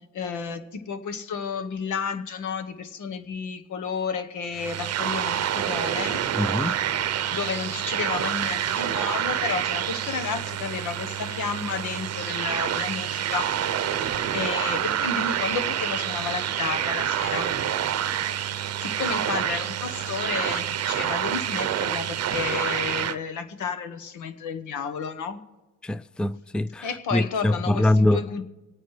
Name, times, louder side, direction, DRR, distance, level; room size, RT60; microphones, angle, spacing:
voice 1, 0.1-6.2 7.3-14.0 14.3-17.6 18.8-25.4 26.8-28.4, left 5 dB, 80° left, 1.2 m, -32 dB
sound 1, 4.5-23.2, right 10 dB, 55° right, 0.7 m, -27 dB
voice 2, 6.4-6.8 25.8-28.2, left 1 dB, 5° left, 0.4 m, -23 dB
24.0 x 9.1 x 3.2 m
cardioid pair, 90°, 30 cm